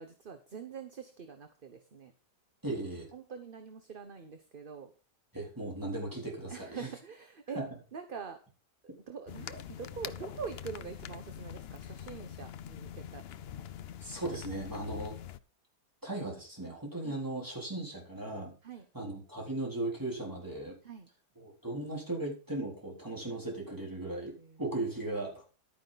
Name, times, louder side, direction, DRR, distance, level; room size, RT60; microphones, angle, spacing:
voice 1, 0.0-2.1 3.1-4.9 6.5-7.6 7.9-8.4 9.1-13.2 17.0-17.2 18.6-18.9 20.8-21.1 24.4-24.6, right 6 dB, 35° right, 7 dB, 1.0 m, -44 dB
voice 2, 2.6-3.1 5.3-6.9 7.6-7.7 14.0-15.1 16.0-18.5 18.9-20.8 21.4-24.3 24.6-25.4, right 2 dB, 10° right, -2 dB, 4.0 m, -37 dB
sound 1, 9.3-15.4, left 9 dB, 75° left, 0.5 m, -44 dB
11.5 x 9.6 x 4.0 m, 0.36 s
omnidirectional pair, 1.8 m